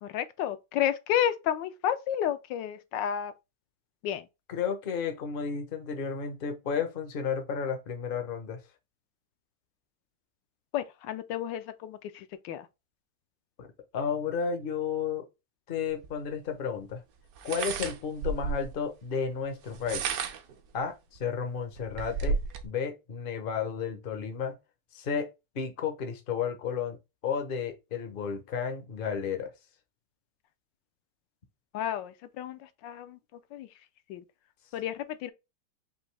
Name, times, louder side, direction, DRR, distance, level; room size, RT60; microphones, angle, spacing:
voice 1, 0.0-3.3 4.0-4.3 10.7-12.7 31.7-33.7 34.1-34.2 34.7-35.3, left 10 dB, 75° left, 1.2 m, -31 dB
voice 2, 4.5-8.6 13.6-13.7 13.9-15.2 15.7-17.0 17.4-20.1 20.7-20.9 21.2-22.4 22.6-24.6 24.9-27.0 27.2-29.5, left 6 dB, 50° left, 0.6 m, -32 dB
sound 1, 16.0-16.1 17.4-18.7 19.7-20.5 21.2-21.3 21.6-22.7, right 5 dB, 65° right, 1.0 m, -32 dB
5.1 x 2.7 x 3.2 m
omnidirectional pair, 2.0 m